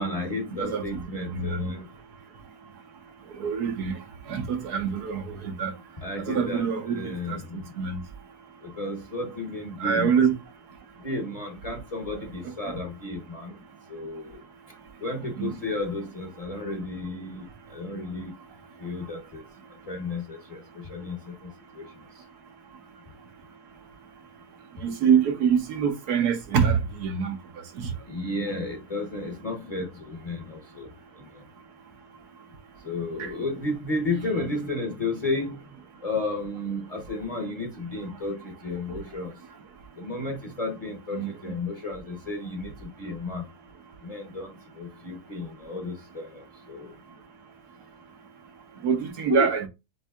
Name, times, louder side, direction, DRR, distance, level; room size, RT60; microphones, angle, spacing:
voice 1, 0.0-1.9 6.0-7.6 8.6-10.1 11.0-13.5 13.9-14.4 15.0-17.5 17.7-18.3 18.8-19.4 19.9-21.5 21.8-21.9 28.1-30.9 31.2-31.3 32.8-35.6 36.0-39.3 40.0-43.4 44.0-46.9 49.3-49.5, left 2 dB, 30° left, 0.8 m, -32 dB
voice 2, 0.5-1.7 3.3-4.0 4.3-5.7 6.3-7.4 7.8-8.0 9.8-10.3 12.4-12.7 15.4-15.5 24.8-27.4 27.7-27.9 33.2-33.3 41.1-41.5 48.8-49.7, right 7 dB, 80° right, 1.5 m, -25 dB
8.0 x 2.7 x 2.4 m
omnidirectional pair, 1.7 m